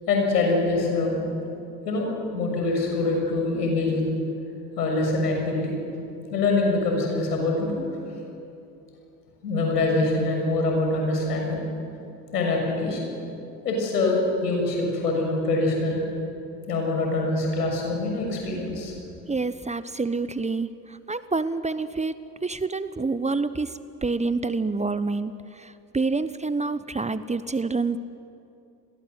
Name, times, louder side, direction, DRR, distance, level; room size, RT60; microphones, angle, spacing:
voice 1, 0.1-1.2 1.8-2.1 2.3-4.0 4.8-5.7 6.3-7.8 9.4-11.6 12.3-13.0 13.6-16.0 16.7-18.9, left 2 dB, 85° left, 1 dB, 6.5 m, -24 dB
voice 2, 19.3-23.7 24.0-28.0, right 3 dB, 15° right, 14 dB, 1.0 m, -27 dB
29.5 x 22.5 x 8.0 m, 2.7 s
hypercardioid pair, 60°, 47 cm